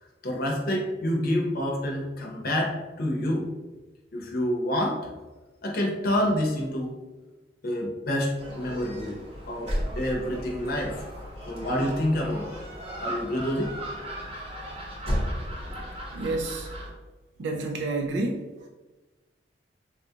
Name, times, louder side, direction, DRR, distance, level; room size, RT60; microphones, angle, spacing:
voice 1, 0.2-3.4 4.1-5.0 5.6-6.9 7.6-9.2 9.5-11.0 11.5-12.5 13.0-13.7, equal, 55° left, 0 dB, 0.6 m, -27 dB
Gull seagull, 8.4-16.9, equal, 30° right, 0.8 m, -35 dB
voice 2, 16.1-16.7 17.4-18.7, right 2 dB, 70° right, 3 dB, 0.4 m, -30 dB
3.7 x 2.4 x 2.7 m, 1.2 s
head